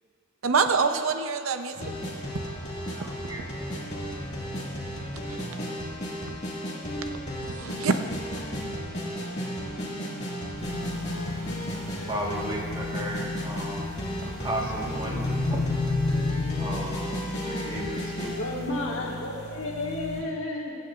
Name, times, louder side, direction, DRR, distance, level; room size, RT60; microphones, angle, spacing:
voice 1, 0.4-1.9 5.3-5.4 6.3-6.4 7.4-7.9, right 5 dB, 80° right, 8 dB, 0.6 m, -25 dB
sound 1, 1.7-18.4, equal, 35° left, 1.9 m, -34 dB
voice 2, 2.9-4.1 10.8-11.5 11.9-13.9 14.2-16.1 16.6-18.3 19.0-19.1, right 1 dB, 25° right, -3 dB, 1.4 m, -36 dB
sound 2, 10.6-20.2, left 3 dB, 20° left, 2.7 m, -33 dB
voice 3, 18.2-20.7, left 2 dB, 70° left, -2 dB, 1.5 m, -32 dB
22.0 x 8.6 x 2.4 m, 2.3 s
head